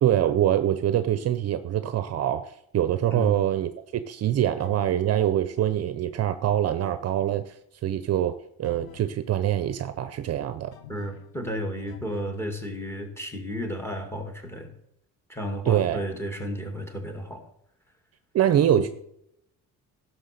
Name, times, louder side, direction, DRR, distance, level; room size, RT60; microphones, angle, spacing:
voice 1, 0.0-7.5 7.8-10.7 15.7-16.0 18.3-18.9, right 11 dB, 45° right, 11 dB, 0.6 m, -24 dB
sound 1, 4.6-5.1 8.6-9.2 10.7-11.4 11.9-12.4, left 10 dB, 85° left, 1.2 m, -48 dB
voice 2, 10.9-14.7 15.3-17.5 18.7-18.9, equal, 5° left, 4 dB, 2.2 m, -33 dB
16.0 x 6.4 x 6.7 m, 0.78 s
cardioid pair, 165°, 35 cm